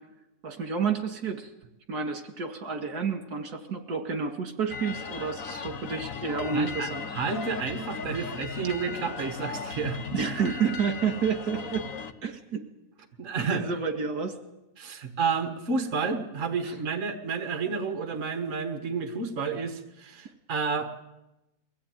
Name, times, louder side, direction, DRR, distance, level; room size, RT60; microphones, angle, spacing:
voice 1, 0.4-1.5 1.9-7.0 10.1-11.9 12.2-12.6 13.4-14.4 16.6-16.7, right 6 dB, 70° right, 5 dB, 2.5 m, -30 dB
sound 1, 4.7-12.1, left 6 dB, 55° left, 1.5 m, -37 dB
voice 2, 6.5-10.0 13.2-13.6 14.8-21.0, right 5 dB, 50° right, 6 dB, 1.9 m, -30 dB
23.0 x 16.5 x 9.2 m, 0.95 s
omnidirectional pair, 1.7 m